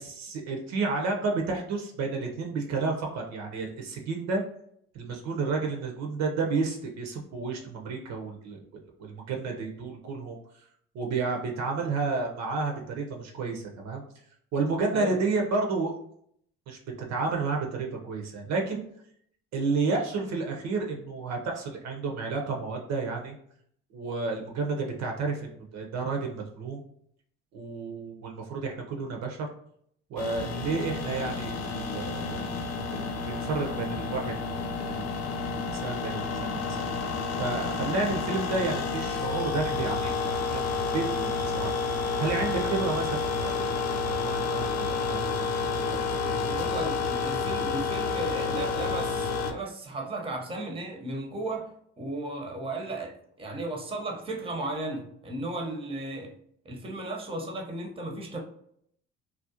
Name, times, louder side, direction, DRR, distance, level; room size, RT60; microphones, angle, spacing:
voice 1, 0.0-4.4 4.9-8.6 9.0-10.4 10.9-14.0 14.5-16.0 16.7-16.8 17.1-18.8 19.5-23.3 23.9-26.8 27.5-29.5 30.1-34.3 34.9-35.0 35.3-36.9 37.4-41.7 42.0-43.8 44.0-45.5 45.8-46.7, right 4 dB, 60° right, 2 dB, 0.6 m, -31 dB
sound 1, 30.2-49.5, left 4 dB, 55° left, 0.4 m, -30 dB
voice 2, 46.4-51.7 52.0-56.3 56.6-58.4, right 2 dB, 15° right, 1 dB, 0.7 m, -35 dB
2.4 x 2.0 x 2.7 m, 0.68 s
supercardioid pair, 70°, 31 cm